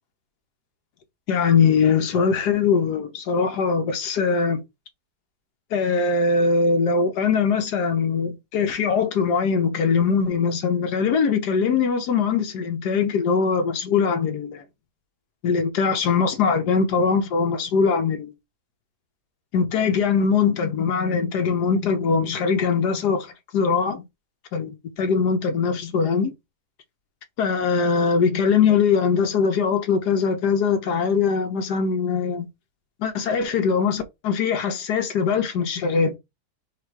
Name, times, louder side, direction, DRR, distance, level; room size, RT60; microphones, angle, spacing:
voice 1, 1.3-4.6 5.7-14.6 15.4-18.3 19.5-24.0 24.5-26.3 27.4-32.5 33.0-36.2, left 5 dB, 80° left, 1.5 m, -21 dB
4.5 x 2.5 x 4.6 m
omnidirectional pair, 1.8 m